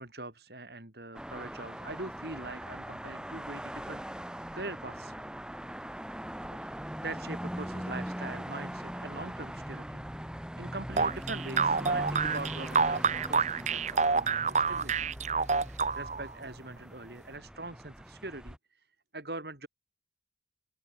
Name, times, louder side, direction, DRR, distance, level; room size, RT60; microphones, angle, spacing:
voice 1, 0.0-4.0 4.5-5.2 6.5-10.2 10.6-15.1 15.7-18.9 19.1-19.7, right 2 dB, 65° right, 4.1 m, -42 dB
sound 1, 1.1-18.6, equal, 5° right, 1.5 m, -41 dB
sound 2, 11.0-16.3, right 5 dB, 40° right, 0.9 m, -28 dB
open air
head